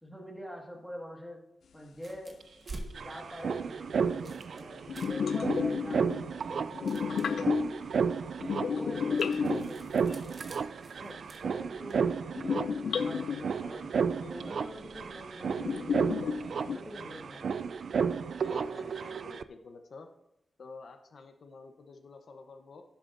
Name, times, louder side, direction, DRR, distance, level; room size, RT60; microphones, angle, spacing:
voice 1, 0.0-1.4 1.7-2.4 2.9-6.1 6.3-7.7 8.7-10.4 11.0-12.1 12.5-12.7 12.9-16.3 16.6-17.6, equal, ahead, -1 dB, 1.7 m, -45 dB
sound 1, 1.9-12.0, right 2 dB, 35° right, 1.1 m, -51 dB
sound 2, 2.4-2.5 2.7-19.4, right 6 dB, 65° right, 0.3 m, -33 dB
sound 3, 4.9-6.4 6.7-7.9 8.4-10.1 12.3-13.6 14.9-15.0 15.4-16.8, left 6 dB, 80° left, 0.3 m, -32 dB
voice 2, 18.4-20.1 20.6-22.8, left 4 dB, 60° left, 6 dB, 0.7 m, -50 dB
16.0 x 7.0 x 2.6 m, 0.85 s
wide cardioid pair, 165°, 0 cm